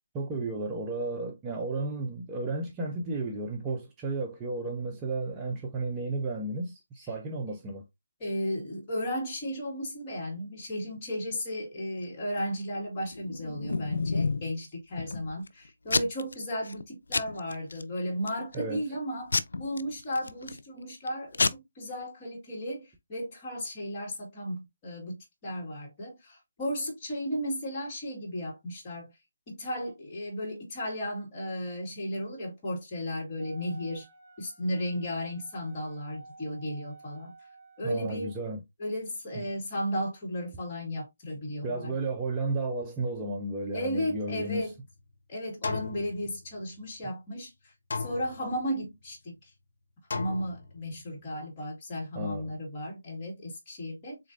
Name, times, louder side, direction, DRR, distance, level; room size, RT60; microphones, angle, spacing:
voice 1, 0.1-7.8 18.5-18.8 37.8-38.6 41.6-44.7 52.1-52.5, right 2 dB, 15° right, 0.6 m, -33 dB
voice 2, 8.2-29.1 29.5-34.1 34.4-37.3 37.8-38.3 38.8-41.9 43.7-44.7 45.3-49.5 50.1-54.3, equal, 30° left, 1.8 m, -35 dB
Packing tape duct tape / Tearing, 13.1-14.5 15.0-15.5 15.9-16.3 16.7-16.8 17.1-17.8 18.3-18.6 19.3-20.6 21.1-21.2 21.3-21.5, left 3 dB, 75° left, 0.3 m, -29 dB
Wind instrument woodwind instrument, 33.4-38.4, right 3 dB, 35° right, 2.8 m, -53 dB
sound 1, 44.1-45.0 45.6-46.9 47.9-48.9 50.1-51.1, left 4 dB, 60° left, 0.9 m, -37 dB
3.8 x 3.0 x 2.5 m
figure-of-eight pair, 155°, 0 cm